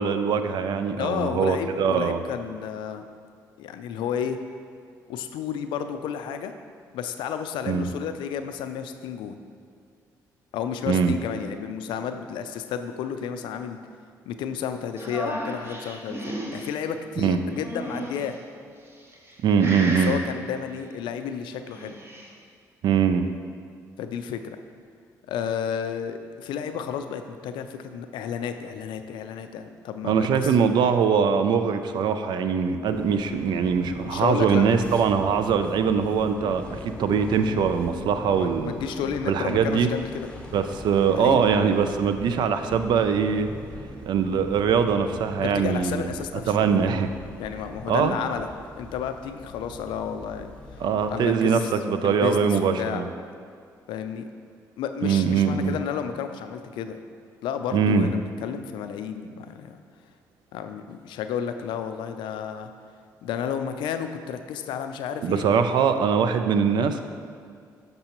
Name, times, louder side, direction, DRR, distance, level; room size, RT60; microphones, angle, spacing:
voice 1, 0.0-2.2 7.7-7.9 10.9-11.2 17.2-17.4 19.4-20.1 22.8-23.3 30.0-38.7 39.2-39.9 40.5-43.5 44.0-46.0 46.5-47.1 47.9-48.2 50.8-53.1 55.0-55.8 57.7-58.1 65.2-67.0, right 6 dB, 65° right, 9 dB, 0.4 m, -22 dB
voice 2, 1.0-3.0 3.6-4.4 5.1-6.5 6.9-9.4 10.5-13.8 14.3-18.4 19.9-22.0 24.0-24.4 25.3-30.6 34.0-34.8 38.3-40.3 41.2-41.4 45.4-46.6 47.4-48.5 48.8-50.5 51.1-51.7 52.0-53.0 53.9-54.3 54.8-57.0 57.4-59.8 60.5-62.7 63.2-65.4, left 8 dB, 75° left, 8 dB, 0.4 m, -32 dB
sound 1, 15.0-16.7 17.5-18.4 19.0-19.3 19.6-20.2 21.5-22.3, right 1 dB, 30° right, 1.0 m, -34 dB
sound 2, 32.9-51.3, left 1 dB, 15° left, 0.7 m, -42 dB
6.6 x 5.3 x 2.9 m, 2.2 s
supercardioid pair, 60°, 8 cm